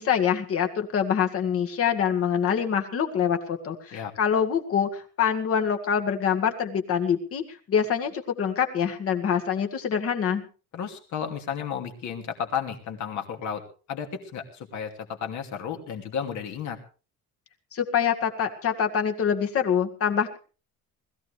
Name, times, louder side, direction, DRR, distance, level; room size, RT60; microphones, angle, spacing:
voice 1, 0.0-10.4 17.7-20.4, left 7 dB, 45° left, 5 dB, 2.0 m, -25 dB
voice 2, 10.7-13.6 13.9-16.8, left 7 dB, 65° left, 4 dB, 2.8 m, -33 dB
20.5 x 15.0 x 3.4 m, 0.36 s
cardioid pair, 155°, 31 cm